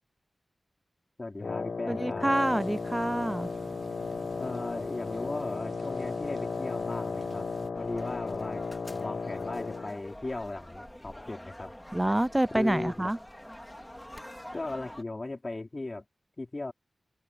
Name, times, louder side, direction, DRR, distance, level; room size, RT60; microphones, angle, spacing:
voice 1, 1.2-2.4 4.4-8.6 8.9-11.7 12.5-13.1 14.5-16.0 16.4-16.7, left 2 dB, 35° left, 4.8 m, -37 dB
Wind instrument woodwind instrument, 1.4-10.0, left 4 dB, 70° left, 0.4 m, -35 dB
voice 2, 1.9-3.5 11.9-13.2, right 1 dB, 15° right, 0.3 m, -27 dB
sound 1, 2.3-7.7, right 5 dB, 90° right, 1.1 m, -49 dB
sound 2, 7.7-15.0, left 1 dB, 10° left, 3.3 m, -46 dB
wide cardioid pair, 90°, 0 cm